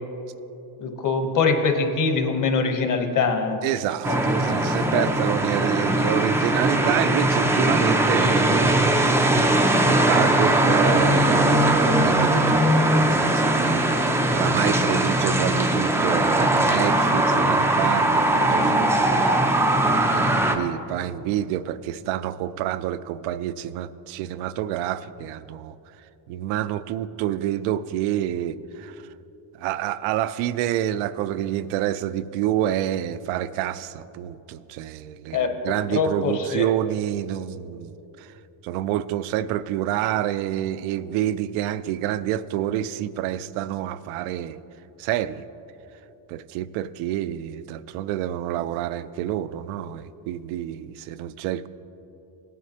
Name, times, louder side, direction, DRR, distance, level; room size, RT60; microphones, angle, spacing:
voice 1, 0.8-3.6 4.1-4.2 4.9-5.1 35.3-35.5 35.9-36.7, left 4 dB, 40° left, 5 dB, 1.0 m, -23 dB
voice 2, 3.6-13.8 14.3-19.2 19.8-25.8 26.3-29.0 29.6-38.3 38.6-44.6 45.0-45.4 46.3-51.7, right 12 dB, 85° right, 15 dB, 0.6 m, -28 dB
sound 1, 4.0-20.6, right 1 dB, 5° right, 0.3 m, -20 dB
18.0 x 9.4 x 2.8 m, 3.0 s
cardioid pair, 140°, 48 cm